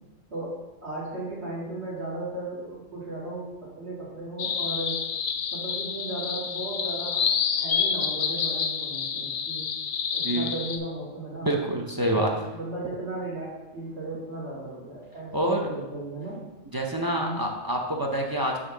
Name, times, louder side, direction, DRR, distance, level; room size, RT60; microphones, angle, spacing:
voice 1, 0.3-5.0 5.5-7.3 7.5-9.7 10.1-11.6 12.1-16.4 17.1-17.5, right 2 dB, 55° right, -7 dB, 2.7 m, -36 dB
sound 1, 4.4-10.8, left 6 dB, 70° left, 0.4 m, -28 dB
voice 2, 11.4-12.3 15.3-15.7 16.7-18.6, right 1 dB, 30° right, 0 dB, 0.4 m, -26 dB
5.1 x 4.1 x 6.0 m, 1.1 s
omnidirectional pair, 1.4 m